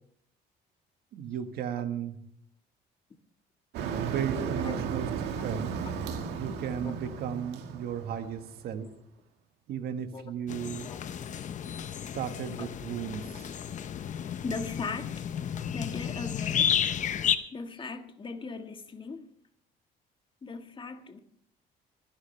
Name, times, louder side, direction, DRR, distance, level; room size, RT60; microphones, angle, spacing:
voice 1, 1.1-2.2 4.0-5.1 5.4-5.7 6.4-8.9 9.7-10.9 12.1-13.5, right 8 dB, 70° right, 1.5 m, -34 dB
Motor vehicle (road), 3.7-8.7, right 6 dB, 85° right, 1.9 m, -35 dB
sound 1, 10.5-17.4, left 8 dB, 45° left, 0.8 m, -32 dB
voice 2, 14.4-15.3 15.7-16.8 17.5-19.3 20.4-21.2, left 4 dB, 30° left, 1.6 m, -38 dB
25.5 x 11.0 x 3.3 m
cardioid pair, 110°, 17 cm